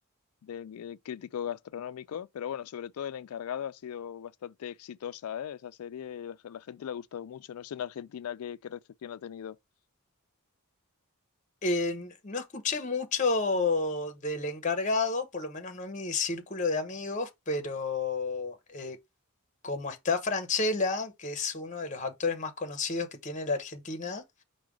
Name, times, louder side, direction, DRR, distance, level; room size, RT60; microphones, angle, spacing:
voice 1, 0.4-9.6, left 9 dB, 85° left, 0.3 m, -38 dB
voice 2, 11.6-19.0 19.6-24.4, left 3 dB, 35° left, 0.8 m, -31 dB
4.9 x 2.2 x 4.7 m
head